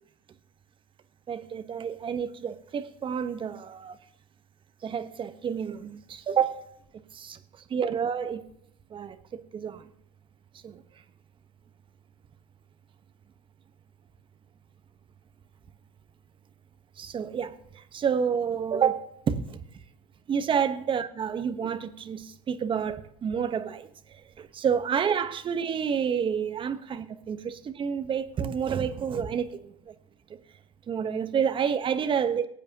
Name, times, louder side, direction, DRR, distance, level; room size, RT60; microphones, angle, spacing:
voice 1, 1.3-4.0 4.8-6.6 7.1-7.4 7.7-8.4 8.9-9.8 10.6-10.8 17.0-19.6 20.3-23.9 24.4-29.5 29.9-30.0 30.9-32.5, right 7 dB, 30° right, 1.1 m, -29 dB
19.5 x 8.9 x 2.9 m
hypercardioid pair, 105°, 17 cm